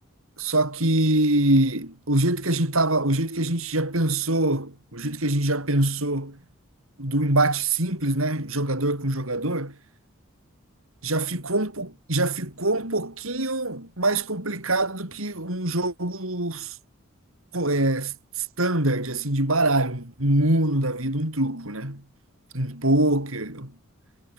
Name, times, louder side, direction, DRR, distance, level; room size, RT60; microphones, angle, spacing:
voice 1, 0.4-6.4 7.0-9.7 11.0-16.8 17.5-22.0 22.5-23.7, right 1 dB, 70° right, 6.4 m, -24 dB
head